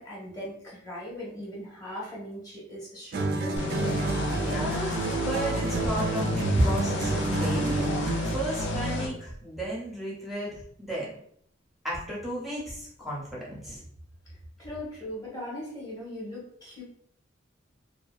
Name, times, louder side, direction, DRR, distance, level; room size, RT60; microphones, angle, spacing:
voice 1, 0.0-3.6 14.6-16.8, left 1 dB, 20° left, -5 dB, 1.0 m, -39 dB
sound 1, 3.1-8.5, right 2 dB, 55° right, 0.3 m, -29 dB
sound 2, 3.6-9.1, left 1 dB, 65° left, 0.4 m, -31 dB
voice 2, 4.3-11.1 11.8-13.8, right 1 dB, ahead, -6 dB, 0.6 m, -33 dB
2.7 x 2.0 x 2.3 m, 0.64 s
head